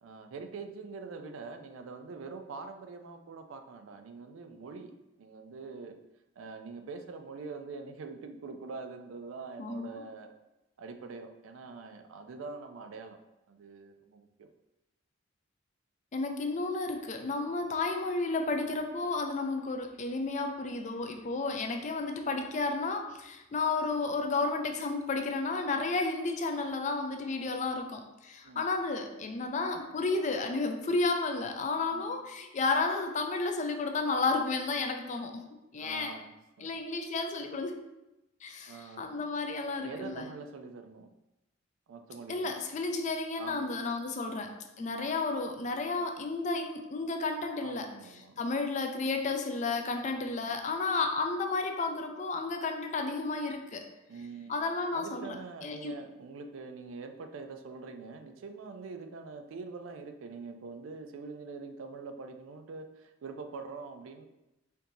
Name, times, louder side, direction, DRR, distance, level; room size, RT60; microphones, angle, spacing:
voice 1, 0.0-4.9 5.2-6.0 6.4-10.3 10.8-13.2 13.5-14.5 28.4-28.7 31.9-32.1 35.8-36.7 38.7-39.1 39.8-41.1 41.9-42.5 43.4-43.7 44.2-44.4 44.8-45.2 47.6-48.4 50.1-50.5 54.1-54.6 54.9-64.3, right 4 dB, 80° right, 7 dB, 0.4 m, -44 dB
voice 2, 9.6-9.9 16.1-35.4 35.7-36.1 36.6-37.8 38.4-40.3 42.3-47.9 48.4-53.8 54.5-55.3 55.6-55.9, left 3 dB, 35° left, 4 dB, 0.4 m, -32 dB
4.4 x 2.7 x 2.6 m, 0.95 s
head